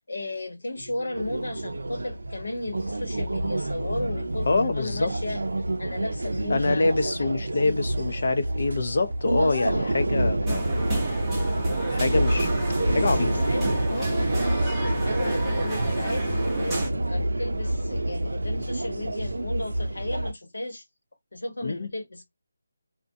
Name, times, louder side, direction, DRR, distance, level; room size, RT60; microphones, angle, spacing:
voice 1, 0.0-5.4 5.8-7.7 9.4-9.9 12.0-12.3 12.9-14.3 15.0-20.8 21.3-22.2, left 2 dB, 85° left, 1.0 m, -35 dB
sound 1, 0.7-7.0, right 1 dB, 60° right, 1.0 m, -38 dB
sound 2, 1.1-20.3, right 1 dB, 90° right, 0.4 m, -28 dB
voice 2, 4.4-5.1 6.5-10.7 11.9-12.5 12.9-13.3 21.6-21.9, left 3 dB, 50° left, 0.5 m, -25 dB
sound 3, 10.5-16.9, right 2 dB, 5° right, 0.6 m, -32 dB
2.5 x 2.1 x 2.6 m
figure-of-eight pair, 175°, 0 cm